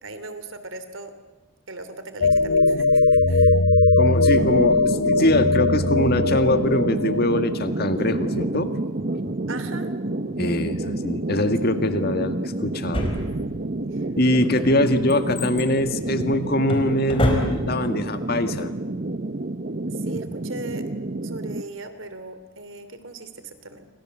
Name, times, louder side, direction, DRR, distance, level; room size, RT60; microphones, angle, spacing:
voice 1, 0.0-1.1 1.7-3.6 9.5-9.9 11.6-11.7 13.9-14.1 19.9-20.9 21.2-23.9, right 2 dB, 70° right, 11 dB, 3.0 m, -38 dB
sound 1, 2.2-7.2, left 3 dB, 80° left, 1.1 m, -19 dB
voice 2, 4.0-8.7 9.2-9.3 10.4-13.1 14.2-18.7, left 1 dB, 50° left, 8 dB, 2.0 m, -23 dB
sound 2, 4.3-21.6, right 2 dB, 45° right, 0.9 m, -29 dB
Drawer open or close, 12.9-13.8 14.4-17.9 18.2-18.3, left 1 dB, 25° left, 4.5 m, -28 dB
29.5 x 24.5 x 7.7 m, 1.1 s
head